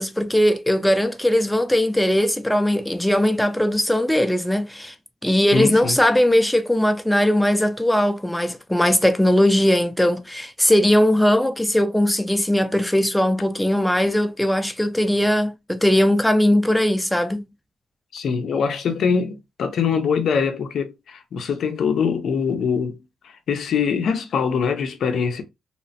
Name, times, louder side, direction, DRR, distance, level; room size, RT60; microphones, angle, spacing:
voice 1, 0.0-4.9 5.2-17.5, left 1 dB, 5° left, 0.4 m, -19 dB
voice 2, 5.5-6.0 18.1-23.0 23.2-25.4, left 6 dB, 70° left, 0.5 m, -23 dB
2.9 x 2.0 x 2.7 m
cardioid pair, 75°, 0 cm